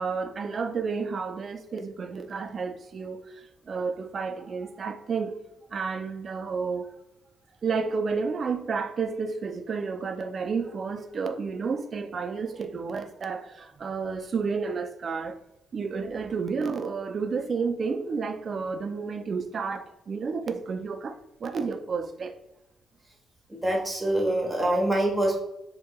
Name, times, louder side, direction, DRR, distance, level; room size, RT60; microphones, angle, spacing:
voice 1, 0.0-5.4 5.7-6.9 7.6-15.4 15.7-22.4, right 5 dB, 40° right, 0.5 m, -31 dB
voice 2, 23.5-25.4, right 1 dB, 10° right, 1.2 m, -25 dB
7.2 x 2.8 x 2.3 m
cardioid pair, 145°, 0 cm